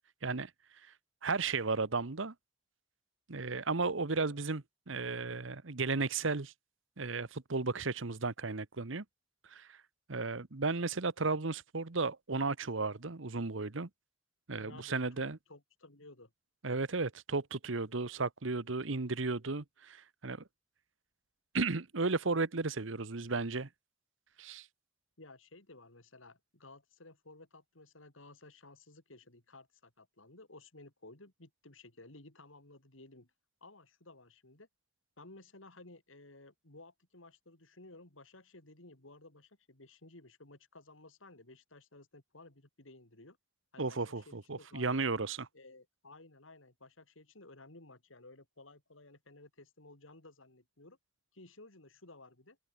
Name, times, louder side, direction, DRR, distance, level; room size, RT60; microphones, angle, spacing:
voice 1, 1.2-2.3 3.3-6.5 7.0-9.0 9.5-9.7 10.1-13.9 14.5-15.4 16.6-20.4 21.5-23.7 24.4-24.6 43.8-45.5, right 3 dB, 75° right, 1.2 m, -34 dB
voice 2, 14.6-16.3 25.2-33.3 33.6-34.7 35.2-43.4 43.7-45.0 45.5-51.0 51.3-52.6, left 2 dB, 85° left, 3.7 m, -56 dB
open air
head